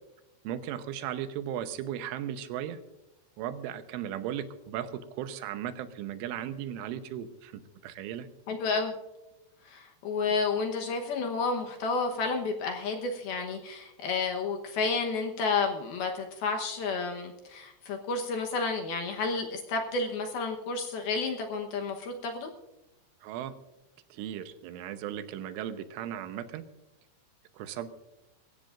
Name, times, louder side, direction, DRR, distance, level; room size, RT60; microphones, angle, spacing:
voice 1, 0.4-2.8 3.4-8.3 23.2-23.5 24.1-26.7 27.5-27.9, right 10 dB, 90° right, 10 dB, 3.4 m, -36 dB
voice 2, 8.5-8.9 9.6-22.5, left 4 dB, 70° left, 3 dB, 2.5 m, -31 dB
23.0 x 15.5 x 2.5 m, 0.98 s
omnidirectional pair, 5.5 m